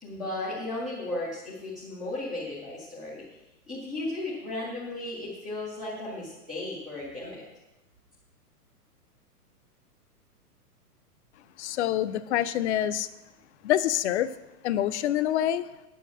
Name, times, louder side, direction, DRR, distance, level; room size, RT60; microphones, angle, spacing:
voice 1, 0.0-3.2 3.7-7.4, left 2 dB, ahead, -9 dB, 0.3 m, -35 dB
voice 2, 11.6-13.1 13.6-14.3 14.6-15.7, left 12 dB, 45° left, 12 dB, 0.6 m, -26 dB
9.3 x 6.8 x 5.7 m, 1.0 s
hypercardioid pair, 120°, 47 cm